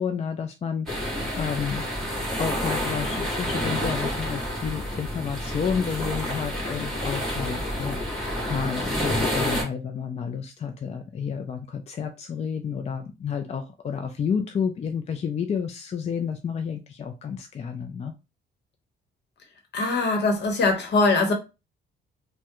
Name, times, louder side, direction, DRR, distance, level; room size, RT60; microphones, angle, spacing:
voice 1, 0.0-1.9 2.4-18.1, left 6 dB, 35° left, 0.4 m, -30 dB
sound 1, 0.9-9.6, equal, ahead, 1.9 m, -29 dB
voice 2, 19.7-21.3, left 3 dB, 60° left, 1.0 m, -22 dB
3.3 x 2.1 x 2.9 m
cardioid pair, 90°, 20 cm